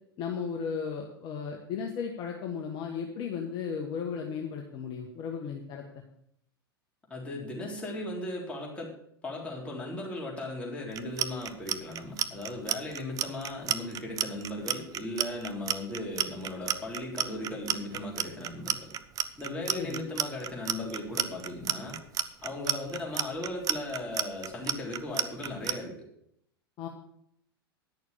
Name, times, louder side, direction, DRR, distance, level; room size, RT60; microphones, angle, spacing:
voice 1, 0.2-5.8 19.8-20.0 26.8-26.9, left 6 dB, 35° left, 1 dB, 1.4 m, -35 dB
voice 2, 7.1-8.9 9.2-18.9 19.2-22.0 22.4-26.0, left 1 dB, 10° left, -4 dB, 3.7 m, -37 dB
Clock, 10.9-25.7, right 10 dB, 30° right, 0.6 m, -30 dB
10.5 x 6.7 x 6.9 m, 0.70 s
figure-of-eight pair, 95°, 13 cm